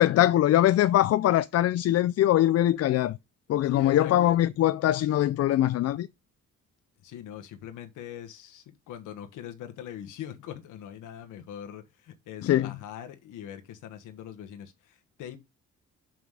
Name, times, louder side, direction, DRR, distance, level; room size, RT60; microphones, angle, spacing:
voice 1, 0.0-3.2 3.5-6.1 12.4-12.7, left 13 dB, 55° left, 0.4 m, -22 dB
voice 2, 3.6-4.4 7.0-15.4, left 10 dB, 85° left, 1.3 m, -42 dB
6.1 x 5.9 x 4.8 m
cardioid pair, 90°, 30 cm